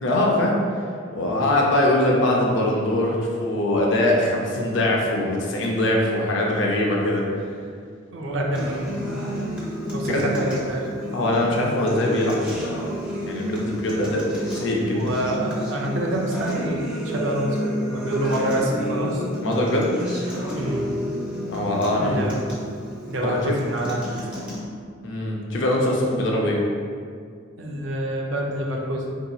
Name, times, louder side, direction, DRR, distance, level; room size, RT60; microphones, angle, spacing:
voice 1, 0.0-0.6 1.1-7.3 10.0-10.2 11.1-12.4 13.2-15.0 19.4-19.9 21.5-22.2 23.2-23.5 25.0-26.6, left 1 dB, 65° left, -2 dB, 0.6 m, -22 dB
voice 2, 8.1-9.3 9.9-10.9 14.9-19.2 20.5-20.9 22.0-22.4 23.1-24.1 27.6-29.2, right 1 dB, 70° right, 0 dB, 0.5 m, -27 dB
Acoustic guitar, 8.5-24.6, equal, 10° right, 0.8 m, -30 dB
3.8 x 2.8 x 2.3 m, 2.1 s
head